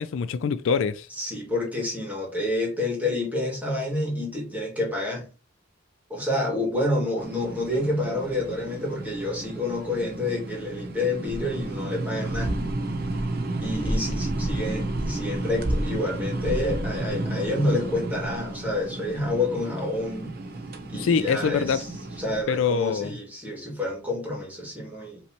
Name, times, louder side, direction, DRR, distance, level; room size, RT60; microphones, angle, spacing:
voice 1, 0.0-1.1 20.9-21.9 22.5-23.2, left 6 dB, 70° left, 0.4 m, -24 dB
voice 2, 1.2-5.3 6.1-12.5 13.6-20.3 20.9-21.9 22.2-25.2, left 2 dB, 10° right, 1.9 m, -28 dB
sound 1, 7.2-22.4, right 1 dB, 50° right, 0.7 m, -31 dB
5.4 x 3.2 x 2.8 m
head